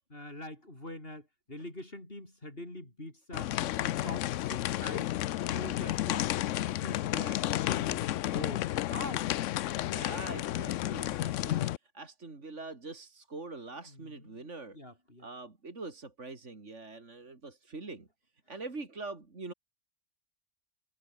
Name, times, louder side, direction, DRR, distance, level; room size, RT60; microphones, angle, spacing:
voice 1, 0.1-3.5 3.8-5.2 5.5-9.3 13.9-14.5 14.7-15.3, left 1 dB, 50° left, 6.8 m, -44 dB
sound 1, 3.3-11.8, left 14 dB, 85° left, 0.9 m, -32 dB
voice 2, 9.8-14.8 15.2-18.1 18.5-19.5, right 3 dB, 75° right, 3.6 m, -44 dB
omnidirectional pair, 1.3 m